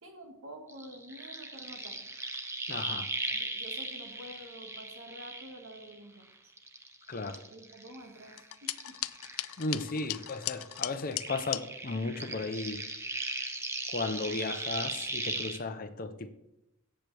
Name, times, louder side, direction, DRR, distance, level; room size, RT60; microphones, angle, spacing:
voice 1, 0.0-2.1 3.3-6.5 7.5-9.1, equal, 70° right, 1.9 m, -49 dB
sound 1, 0.7-6.2 6.6-9.9 10.2-15.6, right 2 dB, 15° right, 0.8 m, -38 dB
voice 2, 2.7-3.1 7.1-7.4 9.6-12.8 13.9-16.3, left 3 dB, 45° left, 0.7 m, -35 dB
sound 2, 8.4-11.6, left 16 dB, 80° left, 0.4 m, -37 dB
17.5 x 7.7 x 3.4 m
head